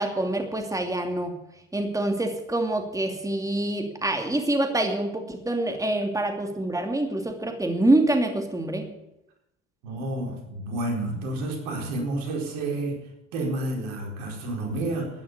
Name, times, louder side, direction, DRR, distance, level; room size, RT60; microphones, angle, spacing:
voice 1, 0.0-1.3 1.7-8.9, right 1 dB, 10° right, 4 dB, 2.8 m, -26 dB
voice 2, 9.8-13.0 13.3-15.2, right 2 dB, 75° right, 2 dB, 4.4 m, -30 dB
12.5 x 11.0 x 8.4 m, 0.85 s
hypercardioid pair, 65°, 37 cm